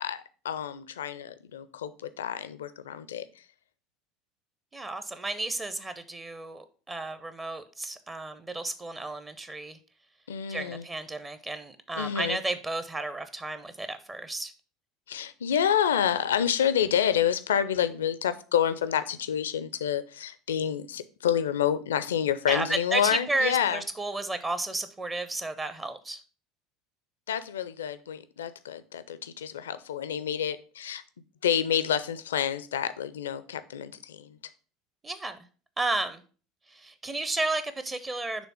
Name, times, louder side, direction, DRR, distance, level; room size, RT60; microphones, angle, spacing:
voice 1, 0.0-3.2 10.3-10.8 12.0-12.4 15.1-23.8 27.3-31.0 31.4-34.4, left 9 dB, 70° left, 0.4 m, -28 dB
voice 2, 4.7-9.8 10.5-14.5 22.5-26.2 35.0-35.4 35.8-36.2 36.7-38.5, right 2 dB, 20° right, 0.6 m, -32 dB
6.2 x 3.4 x 5.6 m
figure-of-eight pair, 70°, 0 cm